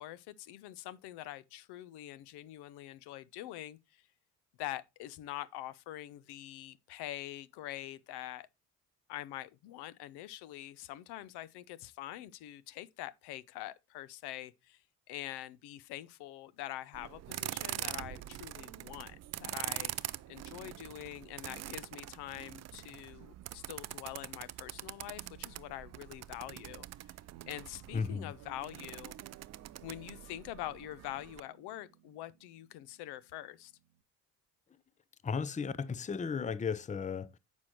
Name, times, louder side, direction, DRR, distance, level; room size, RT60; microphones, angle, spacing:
voice 1, 0.0-4.0 4.6-8.5 9.1-14.8 15.1-26.9 27.5-29.1 29.8-33.7, left 14 dB, 65° left, 0.8 m, -45 dB
sound 1, 16.9-31.4, right 13 dB, 40° right, 0.5 m, -44 dB
Guitar, 27.3-34.0, right 13 dB, 65° right, 0.9 m, -60 dB
voice 2, 27.9-28.3 35.2-37.4, left 5 dB, 15° left, 0.6 m, -35 dB
9.5 x 6.3 x 3.0 m
hypercardioid pair, 50°, 43 cm